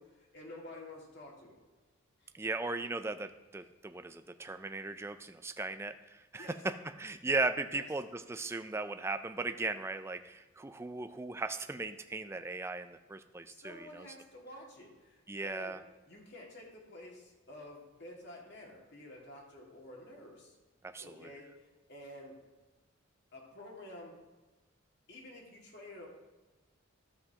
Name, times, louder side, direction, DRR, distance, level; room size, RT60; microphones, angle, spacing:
voice 1, 0.0-1.6 2.2-2.3 6.4-6.6 7.7-7.9 13.5-15.8 16.1-20.6 21.0-22.4 23.3-24.2 25.1-26.1, left 1 dB, 55° left, -2 dB, 2.1 m, -50 dB
voice 2, 2.3-6.7 7.0-14.1 15.3-15.8 20.8-21.3, right 3 dB, 10° right, 9 dB, 0.3 m, -37 dB
12.5 x 7.7 x 2.9 m, 1.2 s
head